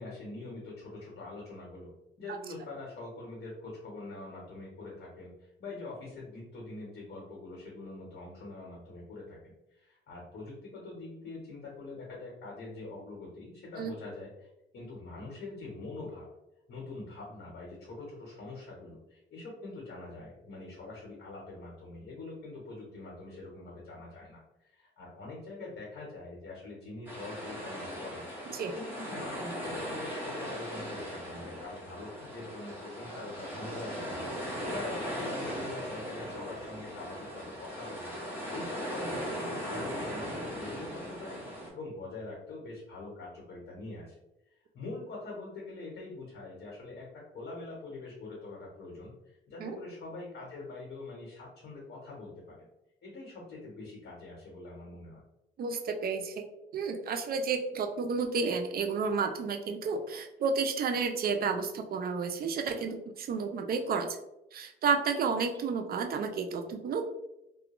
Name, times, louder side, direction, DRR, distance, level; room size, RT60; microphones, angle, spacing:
voice 1, 0.0-16.3 16.7-44.2 44.5-52.7 53.0-55.2, left 2 dB, 60° left, -3 dB, 1.1 m, -44 dB
sound 1, 27.1-41.7, equal, 10° right, 1.0 m, -38 dB
voice 2, 55.6-56.4 56.7-64.2 64.5-67.0, right 5 dB, 50° right, 6 dB, 0.4 m, -31 dB
2.3 x 2.2 x 2.9 m, 0.90 s
cardioid pair, 90°, 20 cm